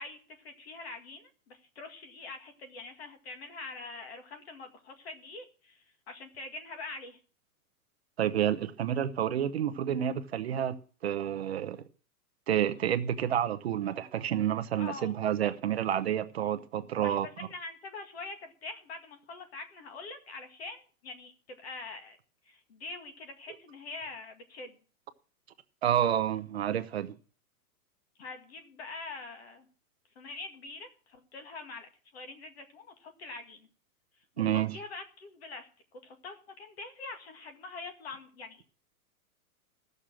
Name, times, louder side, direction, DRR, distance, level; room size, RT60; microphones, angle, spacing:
voice 1, 0.0-7.2 14.8-15.1 17.0-22.2 22.4-24.8 28.2-29.7 30.2-33.7 34.2-35.7 36.0-38.6, left 3 dB, 45° left, 2.1 m, -44 dB
voice 2, 8.2-10.8 11.0-11.8 12.5-17.3 25.8-27.1 34.4-34.7, right 10 dB, 45° right, 0.8 m, -29 dB
15.0 x 6.7 x 7.5 m
hypercardioid pair, 180°, 45 cm